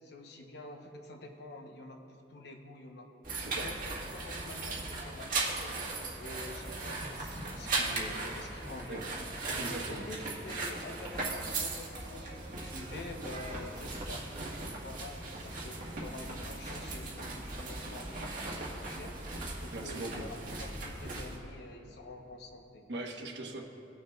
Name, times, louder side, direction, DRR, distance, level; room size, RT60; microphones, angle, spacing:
voice 1, 0.0-3.1 3.6-3.8 4.1-5.8 6.2-9.1 9.9-19.1 19.6-22.8, left 2 dB, 70° left, 3 dB, 0.9 m, -47 dB
sound 1, 3.2-21.4, right 3 dB, 50° right, 1.6 m, -38 dB
voice 2, 9.6-10.1 19.7-20.3 22.9-23.7, right 2 dB, 75° right, 1 dB, 1.1 m, -40 dB
18.5 x 6.4 x 2.4 m, 2.8 s
head